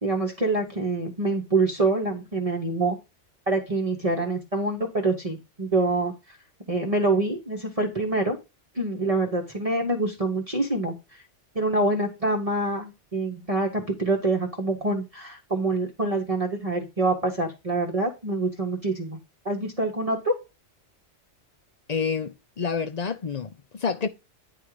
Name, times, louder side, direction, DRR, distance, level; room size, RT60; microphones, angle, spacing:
voice 1, 0.0-3.0 3.5-6.1 6.7-8.4 8.7-11.2 11.5-19.2 19.4-20.3, right 2 dB, 30° right, 1.1 m, -26 dB
voice 2, 21.9-24.1, left 6 dB, 45° left, 0.6 m, -28 dB
9.8 x 3.7 x 4.8 m
omnidirectional pair, 1.2 m